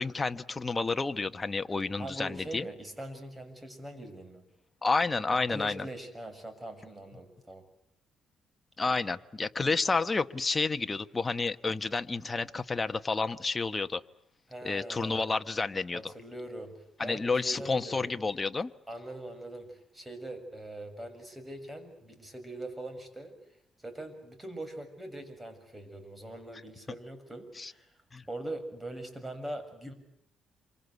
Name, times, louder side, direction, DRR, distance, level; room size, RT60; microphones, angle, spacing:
voice 1, 0.0-2.7 4.8-5.9 8.8-14.0 14.6-16.1 17.0-18.7 27.6-27.7 28.1-28.2, left 3 dB, 25° left, 9 dB, 1.3 m, -30 dB
voice 2, 2.0-4.5 5.5-7.6 14.5-15.3 15.9-18.1 18.9-23.4 23.8-27.9 28.3-29.9, right 1 dB, 15° right, 9 dB, 6.7 m, -42 dB
28.0 x 25.0 x 8.2 m, 0.76 s
cardioid pair, 90°, 0 cm